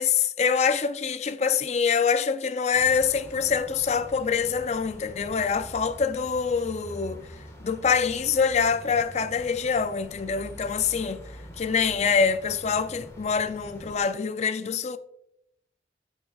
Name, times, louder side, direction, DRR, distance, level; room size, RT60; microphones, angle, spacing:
voice 1, 0.0-7.3 7.6-11.2 11.6-15.0, left 6 dB, 40° left, 0.4 m, -25 dB
sound 1, 2.7-14.0, equal, 15° left, 1.4 m, -45 dB
8.6 x 8.0 x 2.3 m
head